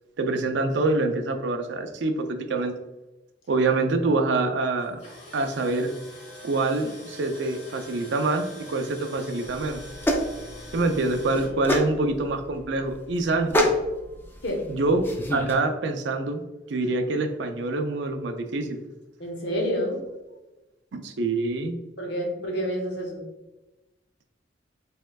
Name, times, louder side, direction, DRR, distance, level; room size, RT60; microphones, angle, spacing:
voice 1, 0.2-2.7 3.5-5.0 5.3-5.9 6.4-9.8 10.7-13.7 14.7-16.4 16.7-18.8 20.9-21.8, right 2 dB, 75° right, 6 dB, 0.5 m, -25 dB
Tools, 4.8-11.5, left 1 dB, 40° left, 1.2 m, -45 dB
sound 1, 9.4-15.5, equal, 10° left, 0.4 m, -29 dB
voice 2, 19.2-20.0 22.0-23.3, equal, 65° left, 0 dB, 1.0 m, -28 dB
4.3 x 3.6 x 2.3 m, 1.0 s
head